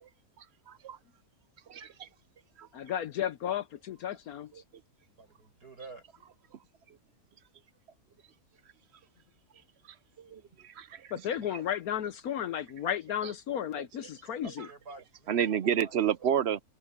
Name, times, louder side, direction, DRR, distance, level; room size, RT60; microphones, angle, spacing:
voice 1, 0.7-1.0 1.7-2.1 2.6-2.7 10.3-11.1 15.3-16.6, right 9 dB, 60° right, 0.7 m, -30 dB
voice 2, 2.7-4.5 11.1-14.7, left 10 dB, 75° left, 1.3 m, -33 dB
voice 3, 5.2-6.0 14.4-16.3, right 3 dB, 80° right, 7.2 m, -50 dB
omnidirectional pair, 1.6 m